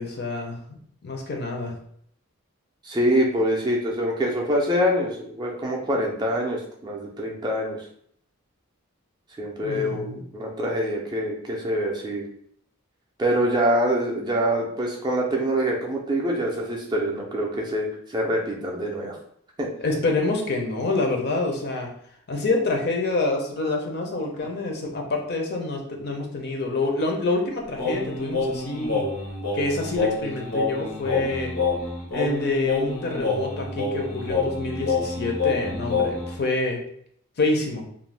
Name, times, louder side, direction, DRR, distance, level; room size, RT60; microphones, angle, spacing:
voice 1, 0.0-1.7 9.6-10.2 19.8-21.9 22.3-29.1 29.5-31.5 32.1-36.8 37.4-37.8, left 2 dB, 50° left, 2 dB, 0.5 m, -27 dB
voice 2, 2.8-7.8 9.4-12.2 13.2-19.2 19.6-19.7, equal, 20° right, -1 dB, 0.4 m, -25 dB
Singing, 27.8-36.4, left 3 dB, 90° left, 0.9 m, -27 dB
2.4 x 2.1 x 3.2 m, 0.66 s
head